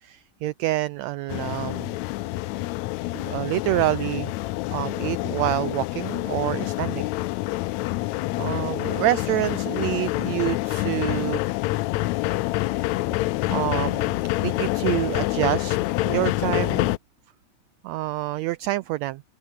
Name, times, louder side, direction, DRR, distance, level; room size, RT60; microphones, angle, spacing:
voice 1, 0.0-2.0 3.1-4.3 4.7-7.2 8.4-11.4 13.5-17.0 17.8-19.2, right 16 dB, 85° right, 1.5 m, -27 dB
sound 1, 1.3-17.0, left 18 dB, 80° left, 1.7 m, -27 dB
omnidirectional pair, 3.7 m